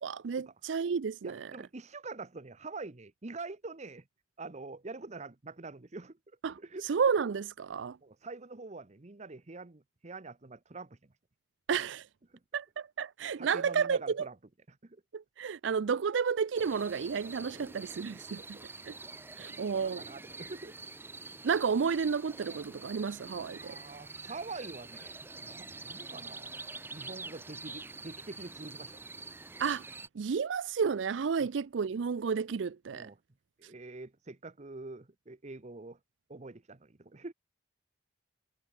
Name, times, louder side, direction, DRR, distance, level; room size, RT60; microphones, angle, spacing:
voice 1, 0.0-1.4 6.4-6.5 6.9-8.0 11.7-12.0 12.5-14.3 15.1-18.6 18.9-19.0 19.4-20.0 21.4-23.8 29.6-29.9 30.2-33.1, right 6 dB, 80° right, 0.5 m, -31 dB
voice 2, 1.2-4.1 4.4-6.2 6.6-6.9 8.0-11.1 12.3-12.4 13.4-14.4 14.7-15.0 17.5-17.7 17.9-20.8 23.5-26.6 26.9-29.0 31.4-31.5 32.9-33.2 33.6-36.0 36.3-37.3, right 3 dB, 40° right, 0.9 m, -46 dB
sound 1, 16.5-30.1, right 3 dB, 10° right, 0.5 m, -46 dB
head